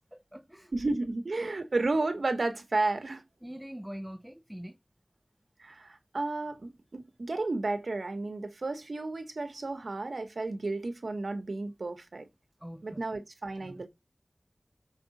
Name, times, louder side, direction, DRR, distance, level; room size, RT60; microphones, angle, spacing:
voice 1, 0.0-0.7 3.4-4.8 12.6-13.0 13.6-13.9, equal, 10° right, 0.8 m, -44 dB
voice 2, 0.7-3.2 5.6-12.3 12.8-13.9, right 2 dB, 80° right, 1.6 m, -32 dB
7.2 x 5.2 x 4.3 m
wide cardioid pair, 65°, 0 cm